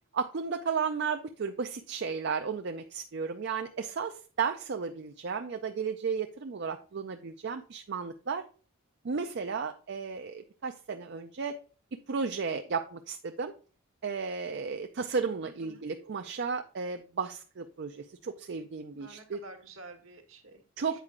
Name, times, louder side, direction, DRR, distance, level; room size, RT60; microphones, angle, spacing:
voice 1, 0.1-8.4 9.0-11.6 12.1-13.5 14.0-19.4 20.8-21.0, right 5 dB, 55° right, 6 dB, 0.5 m, -34 dB
voice 2, 15.4-15.8 19.0-21.0, right 2 dB, 70° right, 5 dB, 1.4 m, -50 dB
8.2 x 4.8 x 3.6 m, 0.38 s
head